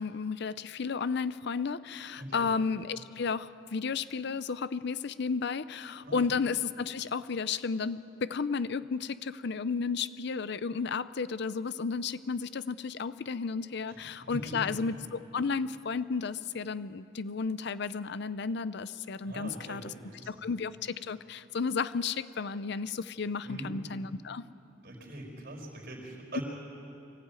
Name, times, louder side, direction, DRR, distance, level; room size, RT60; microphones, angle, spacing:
voice 1, 0.0-19.9 20.3-24.4 26.3-26.4, left 5 dB, 60° left, 15 dB, 0.6 m, -33 dB
voice 2, 2.2-2.5 6.0-6.3 13.9-14.7 19.2-20.3 23.4-23.7 24.8-26.4, right 1 dB, 55° right, 2 dB, 4.7 m, -42 dB
23.5 x 15.5 x 9.0 m, 2.9 s
head